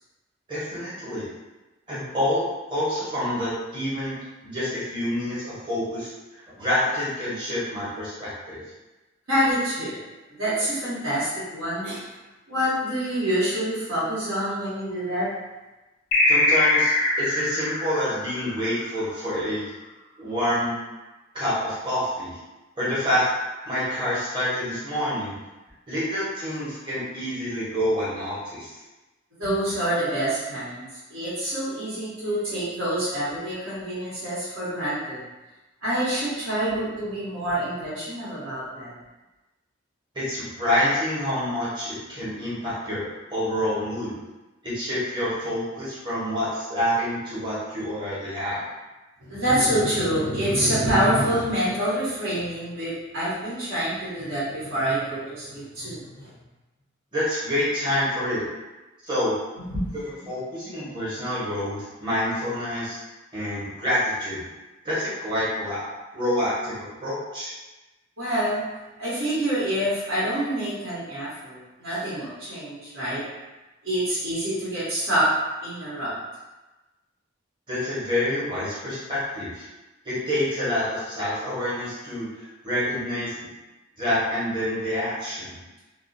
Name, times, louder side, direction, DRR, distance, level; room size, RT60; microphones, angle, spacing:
voice 1, 0.5-1.3 1.9-4.2 4.4-6.1 6.6-8.6 16.3-19.7 20.2-20.8 21.3-22.4 22.8-23.3 23.6-25.3 25.9-28.8 40.1-43.0 43.3-44.2 44.6-48.6 57.1-58.4 59.1-59.3 60.3-63.0 63.3-64.5 64.8-65.8 66.1-67.5 77.7-79.7 80.0-83.5 84.0-85.5, left 1 dB, 25° right, -10 dB, 1.0 m, -27 dB
voice 2, 9.3-10.0 10.4-12.0 12.5-15.3 29.4-35.2 35.8-38.9 49.2-56.3 59.6-59.8 68.2-68.6 69.0-73.2 73.8-75.3 75.6-76.1, right 1 dB, 80° right, -10 dB, 1.1 m, -26 dB
sound 1, 16.1-19.1, left 2 dB, 50° left, 0.4 m, -22 dB
2.4 x 2.1 x 2.5 m, 1.1 s
head